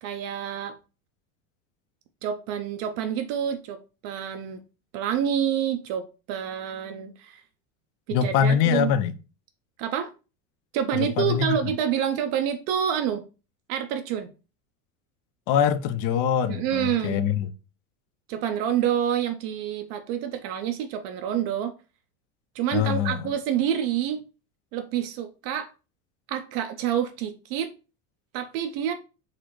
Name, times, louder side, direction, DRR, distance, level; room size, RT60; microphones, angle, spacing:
voice 1, 0.0-0.7 2.2-3.8 4.0-4.6 4.9-7.4 8.1-8.9 9.8-10.1 10.7-13.2 13.7-14.3 16.5-17.2 18.3-21.7 22.5-24.2 24.7-25.7 26.3-27.7 28.3-28.9, right 9 dB, 60° right, 0.6 m, -27 dB
voice 2, 8.1-9.1 10.9-11.5 15.5-17.5 22.7-23.3, left 8 dB, 50° left, 0.5 m, -23 dB
4.0 x 2.5 x 3.0 m
supercardioid pair, 110°, 40 cm